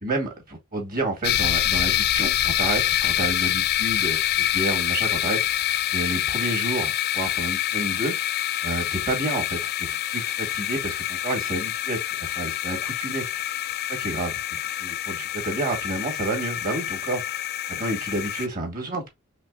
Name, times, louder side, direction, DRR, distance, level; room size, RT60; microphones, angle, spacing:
voice 1, 0.7-5.4 5.9-8.2 8.6-13.4 14.0-14.4 14.8-17.4 17.7-19.1, right 2 dB, 40° right, 2.0 m, -30 dB
sound 1, 1.2-18.5, left 12 dB, 45° left, 0.3 m, -26 dB
5.1 x 3.2 x 2.3 m
head